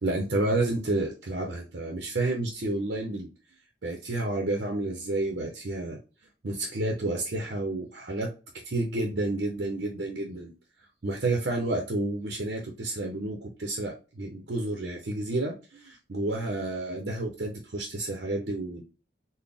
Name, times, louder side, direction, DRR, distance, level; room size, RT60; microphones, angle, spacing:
voice 1, 0.0-3.3 3.8-6.0 6.4-8.3 8.6-10.5 11.0-18.8, right 2 dB, 65° right, 1 dB, 0.7 m, -30 dB
4.0 x 2.1 x 3.4 m, 0.32 s
head